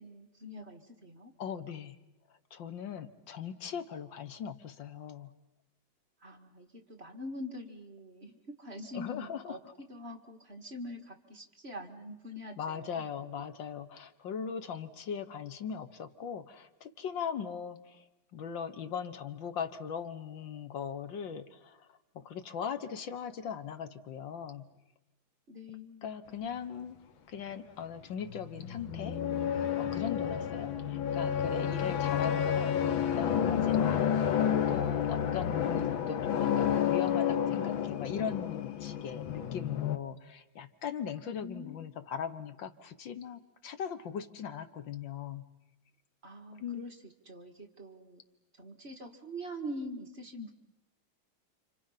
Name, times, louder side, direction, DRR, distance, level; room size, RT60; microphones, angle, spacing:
voice 1, 0.0-1.3 6.2-13.0 25.5-26.1 41.3-41.8 46.2-47.0 47.3-48.2 48.6-50.5, equal, 35° right, 4 dB, 2.1 m, -44 dB
voice 2, 1.4-2.0 2.5-5.3 8.9-9.7 12.6-18.0 18.3-21.9 22.2-24.7 26.0-27.0 27.3-29.2 29.8-34.1 34.7-45.5 46.6-46.8, left 7 dB, 75° left, 10 dB, 1.9 m, -39 dB
sound 1, 28.3-40.0, left 9 dB, 90° left, 1.9 m, -30 dB
30.0 x 26.5 x 5.8 m, 0.96 s
omnidirectional pair, 2.1 m